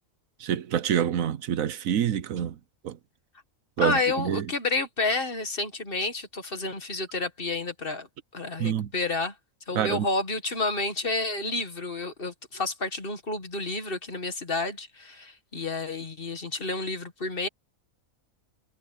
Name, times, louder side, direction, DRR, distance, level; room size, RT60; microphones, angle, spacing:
voice 1, 0.4-2.6 2.8-3.0 3.8-4.5 8.6-8.9 9.7-10.1, right 9 dB, 75° right, 1.2 m, -27 dB
voice 2, 3.8-8.1 8.3-9.3 9.7-17.5, left 3 dB, 40° left, 1.8 m, -30 dB
omnidirectional pair, 1.4 m